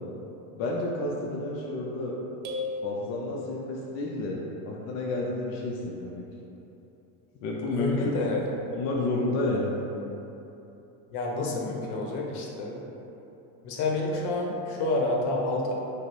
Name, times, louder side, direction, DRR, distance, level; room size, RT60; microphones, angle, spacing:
voice 1, 0.5-2.2 2.8-6.2 7.4-8.1 8.7-9.8, left 2 dB, 40° left, -3 dB, 0.5 m, -30 dB
sound 1, 2.4-4.0, left 3 dB, 35° right, 0.7 m, -36 dB
voice 2, 7.7-8.5 11.1-12.8 13.6-15.7, left 2 dB, 60° left, -1 dB, 0.9 m, -29 dB
5.4 x 2.0 x 4.6 m, 3.0 s
supercardioid pair, 135°, 44 cm